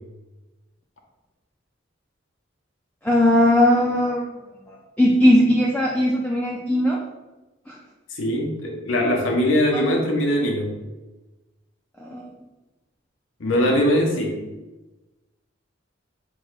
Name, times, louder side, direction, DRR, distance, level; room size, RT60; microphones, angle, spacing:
voice 1, 3.0-4.3 4.7-7.0 7.7-7.8 9.7-9.8 12.0-12.3, left 1 dB, 5° left, -4 dB, 0.4 m, -19 dB
voice 2, 8.1-10.7 13.4-14.4, equal, 80° left, 0 dB, 0.8 m, -21 dB
4.6 x 2.3 x 4.0 m, 1.1 s
head